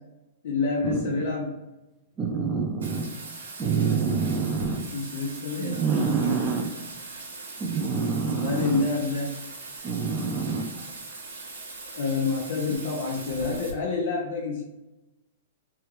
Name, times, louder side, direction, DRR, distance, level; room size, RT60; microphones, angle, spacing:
voice 1, 0.4-1.6 4.9-5.9 8.3-9.4 11.9-14.6, left 4 dB, 65° left, -2 dB, 0.7 m, -28 dB
sound 1, 0.8-1.2 2.2-3.1 3.6-4.8 5.6-6.7 7.6-8.8 9.8-10.8 12.7-12.8, right 5 dB, 20° right, 0.6 m, -27 dB
Bathtub (filling or washing), 2.8-13.7, right 3 dB, 90° right, 1.1 m, -41 dB
3.4 x 2.3 x 3.1 m, 1.0 s
hypercardioid pair, 130°, 0 cm